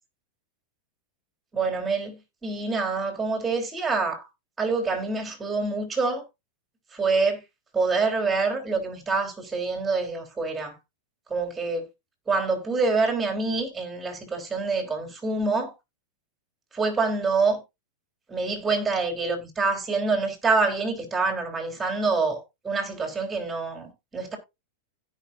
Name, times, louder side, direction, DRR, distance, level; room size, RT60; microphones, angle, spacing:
voice 1, 1.5-4.3 4.6-6.2 6.9-7.4 7.7-10.8 11.3-11.8 12.3-15.7 16.7-17.6 18.3-24.4, right 4 dB, 15° right, 3.3 m, -26 dB
16.0 x 5.5 x 2.6 m
hypercardioid pair, 110°, 0 cm